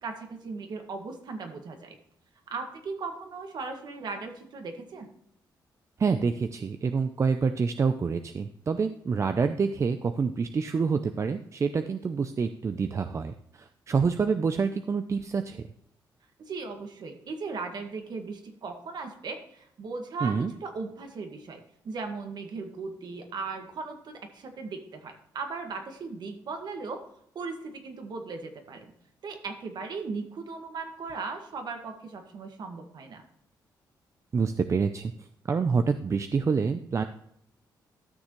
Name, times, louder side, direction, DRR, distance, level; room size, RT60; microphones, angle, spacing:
voice 1, 0.0-2.0 2.5-5.1 16.4-27.0 27.4-28.9 29.2-33.2, right 4 dB, 60° right, 4 dB, 1.8 m, -37 dB
voice 2, 6.0-15.6 20.2-20.5 34.3-35.1 35.5-37.0, right 5 dB, 40° right, 9 dB, 0.6 m, -27 dB
13.5 x 6.3 x 3.1 m, 0.72 s
cardioid pair, 85°, 8 cm